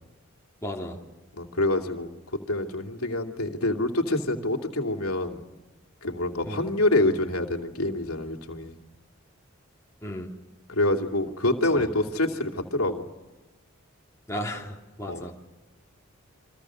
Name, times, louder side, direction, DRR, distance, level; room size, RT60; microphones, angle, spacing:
voice 1, 0.6-1.0 6.4-6.7 10.0-10.3 11.7-11.9 14.3-15.4, equal, 15° left, -1 dB, 3.0 m, -35 dB
voice 2, 1.3-2.1 2.5-5.4 6.0-8.8 10.7-13.0 15.1-15.3, left 2 dB, 85° left, 4 dB, 2.8 m, -26 dB
28.5 x 24.5 x 6.4 m, 1.1 s
head